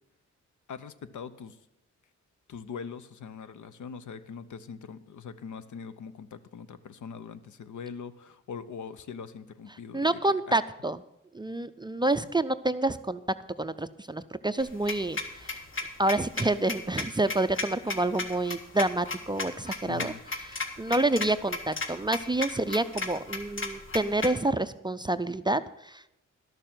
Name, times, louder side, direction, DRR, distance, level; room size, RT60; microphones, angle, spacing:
voice 1, 0.7-1.6 2.5-10.6 19.9-20.2, left 6 dB, 75° left, 13 dB, 0.8 m, -42 dB
voice 2, 9.9-11.0 11.3-13.2 13.6-15.6 16.0-20.1 20.5-26.3, right 2 dB, 15° right, 12 dB, 0.4 m, -28 dB
sound 1, 14.6-24.3, left 3 dB, 40° left, 1.7 m, -34 dB
12.0 x 6.7 x 7.5 m, 0.85 s
cardioid pair, 80°, 30 cm